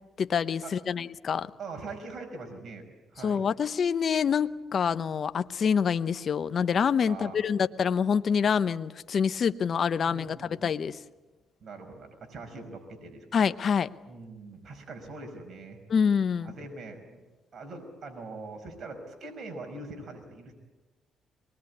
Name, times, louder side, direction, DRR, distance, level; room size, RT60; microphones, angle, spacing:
voice 1, 0.2-1.5 3.2-11.0 13.3-13.9 15.9-16.5, left 6 dB, 50° left, 12 dB, 0.8 m, -26 dB
voice 2, 1.6-2.8 3.1-3.5 7.0-7.4 9.9-10.5 11.6-13.4 14.0-15.8 16.4-17.2 17.5-20.5, right 3 dB, 50° right, 4 dB, 5.3 m, -42 dB
24.0 x 21.0 x 9.6 m, 1.2 s
cardioid pair, 90°, 0 cm